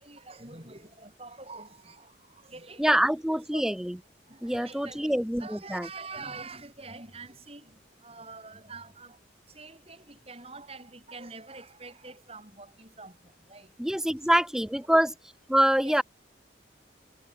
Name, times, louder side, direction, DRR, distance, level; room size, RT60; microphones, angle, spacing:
voice 1, 0.0-3.6 4.2-13.8 14.1-14.4 14.9-15.0 15.8-16.0, right 3 dB, 30° right, 7.8 m, -46 dB
voice 2, 2.8-4.0 4.4-5.9 13.8-15.1 15.5-16.0, equal, 5° right, 0.6 m, -25 dB
head